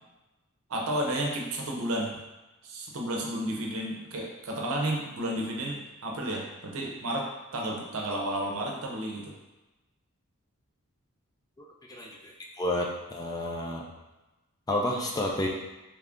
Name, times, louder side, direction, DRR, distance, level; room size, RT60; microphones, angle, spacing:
voice 1, 0.7-2.2 2.6-7.3 7.5-9.3, right 1 dB, 65° right, -1 dB, 0.7 m, -32 dB
voice 2, 11.9-12.3 12.6-13.8 14.7-15.5, left 1 dB, 15° left, 0 dB, 0.3 m, -30 dB
3.2 x 2.5 x 3.5 m, 1.1 s
head